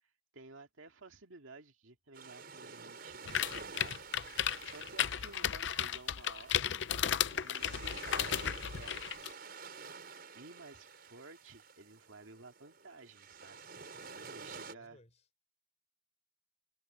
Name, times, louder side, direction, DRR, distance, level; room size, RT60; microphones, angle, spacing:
voice 1, 0.3-6.8 7.4-9.6 10.3-13.6 13.9-15.0, right 3 dB, 80° right, 2.2 m, -54 dB
sound 1, 2.1-14.7, right 5 dB, 50° right, 5.7 m, -50 dB
sound 2, 3.3-9.3, left 9 dB, 60° left, 0.5 m, -34 dB
voice 2, 14.1-15.5, left 1 dB, 35° left, 4.9 m, -64 dB
head